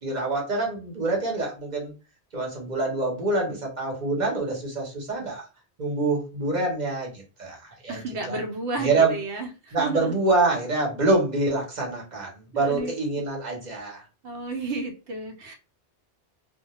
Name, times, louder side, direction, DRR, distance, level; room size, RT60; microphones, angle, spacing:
voice 1, 0.0-1.9 2.3-5.4 5.8-8.0 8.3-8.4 8.8-9.1 9.7-14.0, right 2 dB, 45° right, 0 dB, 0.9 m, -26 dB
voice 2, 7.9-10.1 12.5-12.9 14.2-15.5, right 3 dB, 75° right, 4 dB, 0.9 m, -32 dB
2.2 x 2.1 x 2.8 m, 0.32 s
omnidirectional pair, 1.2 m